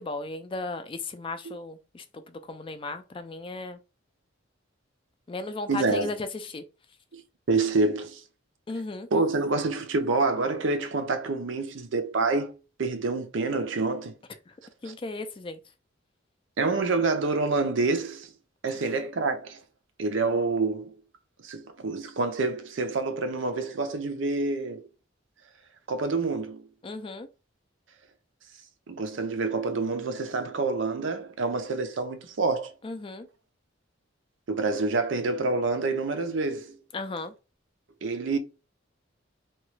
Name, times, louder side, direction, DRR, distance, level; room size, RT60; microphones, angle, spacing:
voice 1, 0.0-3.8 5.3-6.6 8.7-9.1 14.5-14.6 14.8-15.6 26.8-27.3 32.8-33.3 36.9-37.3, left 3 dB, 25° left, 0.4 m, -36 dB
voice 2, 5.7-6.1 7.1-7.2 7.5-8.2 9.1-12.5 12.8-14.1 14.9-15.0 16.6-18.3 18.6-19.6 20.0-21.0 21.4-24.9 25.9-26.7 28.9-32.7 34.5-36.8 38.0-38.4, right 3 dB, 70° right, 0.6 m, -27 dB
2.9 x 2.3 x 3.1 m
head